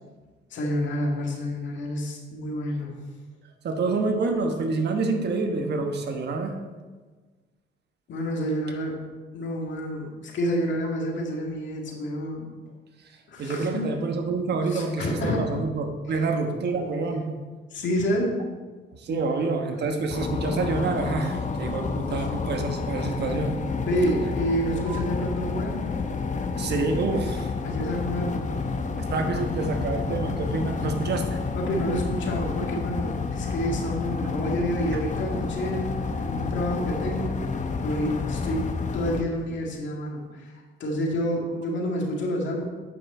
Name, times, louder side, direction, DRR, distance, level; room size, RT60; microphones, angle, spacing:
voice 1, 0.5-2.9 8.1-9.0 9.3-12.5 13.3-13.9 14.7-15.5 17.7-18.5 19.1-19.2 22.0-22.3 23.8-25.8 27.6-28.6 31.6-37.3 37.8-40.5 40.8-42.6, equal, 70° left, -1 dB, 2.1 m, -29 dB
voice 2, 3.6-6.5 13.4-17.3 18.9-23.5 24.9-25.0 26.6-27.5 29.0-31.4 34.4-34.5, right 3 dB, 55° right, 4 dB, 1.2 m, -27 dB
sound 1, 20.1-39.2, left 4 dB, 40° left, 0.8 m, -30 dB
9.2 x 5.8 x 4.3 m, 1.3 s
cardioid pair, 90°, 20 cm